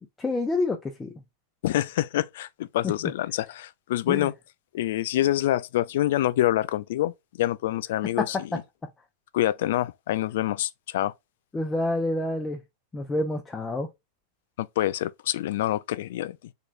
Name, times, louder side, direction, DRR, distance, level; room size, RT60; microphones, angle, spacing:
voice 1, 0.2-1.1 2.8-2.9 4.1-4.3 8.2-8.6 11.5-12.6 12.9-13.9, left 2 dB, 15° left, 0.7 m, -28 dB
voice 2, 1.6-4.3 4.7-7.1 7.4-8.6 9.3-11.1 14.6-16.4, left 14 dB, 55° left, 0.3 m, -26 dB
3.7 x 3.0 x 2.4 m
figure-of-eight pair, 90°, 0 cm